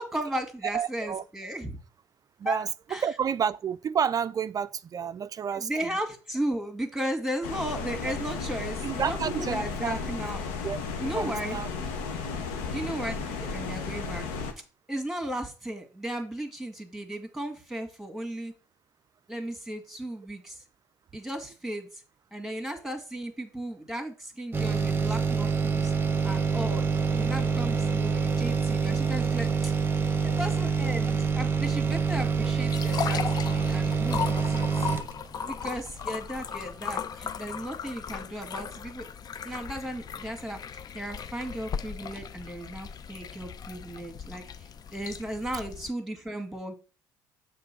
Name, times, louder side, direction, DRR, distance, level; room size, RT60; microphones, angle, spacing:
voice 1, 0.0-1.8 2.4-2.6 2.9-3.0 5.5-10.4 11.0-11.6 12.7-14.2 14.9-18.5 19.3-20.6 21.1-21.9 22.3-25.9 26.2-26.8 27.1-29.7 30.2-34.9 35.5-39.1 39.4-46.7, right 1 dB, 5° right, 1.9 m, -35 dB
voice 2, 0.7-1.2 2.4-2.7 3.0-5.9 8.1-8.2 8.8-9.9 10.6-11.7 12.3-12.5, right 7 dB, 40° right, 0.4 m, -30 dB
sound 1, 7.4-14.5, left 4 dB, 80° left, 1.1 m, -34 dB
sound 2, 24.5-36.1 36.5-36.6, right 5 dB, 25° right, 0.8 m, -26 dB
sound 3, 31.7-45.9, left 7 dB, 45° left, 0.5 m, -37 dB
6.7 x 3.4 x 5.9 m
hypercardioid pair, 70°, 10 cm